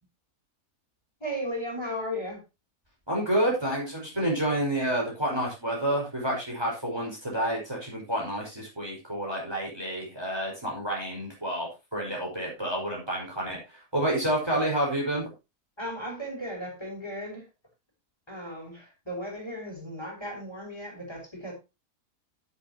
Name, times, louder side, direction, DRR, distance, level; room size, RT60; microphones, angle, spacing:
voice 1, 1.2-2.4 15.8-17.5 18.3-21.5, equal, 15° left, -1 dB, 6.1 m, -36 dB
voice 2, 3.1-15.3, right 1 dB, 15° right, -2 dB, 5.5 m, -29 dB
17.0 x 7.3 x 3.0 m, 0.26 s
omnidirectional pair, 1.7 m